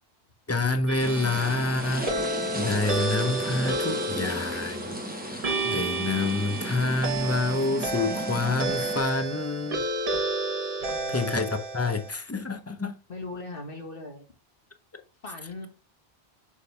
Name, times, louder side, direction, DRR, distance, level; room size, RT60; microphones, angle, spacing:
voice 1, 0.5-2.1 2.5-4.9 5.3-9.8 11.1-13.0, left 3 dB, 15° left, 0.6 m, -27 dB
sound 1, 0.9-12.1, right 2 dB, 35° right, 1.0 m, -31 dB
sound 2, 1.0-9.0, right 1 dB, 10° right, 0.9 m, -35 dB
voice 2, 10.8-11.2 13.1-14.3 15.2-15.7, left 2 dB, 55° left, 1.8 m, -39 dB
6.5 x 5.2 x 3.3 m
omnidirectional pair, 1.1 m